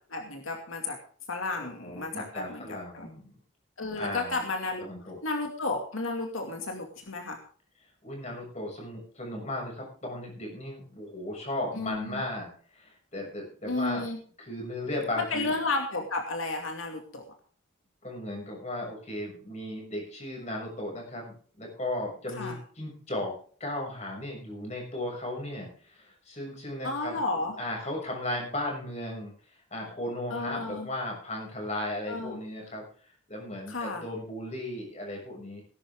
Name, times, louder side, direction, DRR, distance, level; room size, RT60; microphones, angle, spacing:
voice 1, 0.1-1.0 1.3-3.1 3.8-4.9 5.2-7.4 11.8-12.2 13.6-14.2 15.2-17.2 22.3-22.6 26.8-27.5 30.3-30.9 32.1-32.4 33.7-34.0, left 3 dB, 85° left, 3 dB, 2.5 m, -32 dB
voice 2, 1.6-3.3 4.0-4.4 4.8-5.2 8.0-14.1 14.4-15.5 18.0-23.3 23.6-27.1 27.6-29.3 29.7-35.6, left 1 dB, 35° left, 0 dB, 6.8 m, -36 dB
19.0 x 11.5 x 3.7 m, 0.43 s
head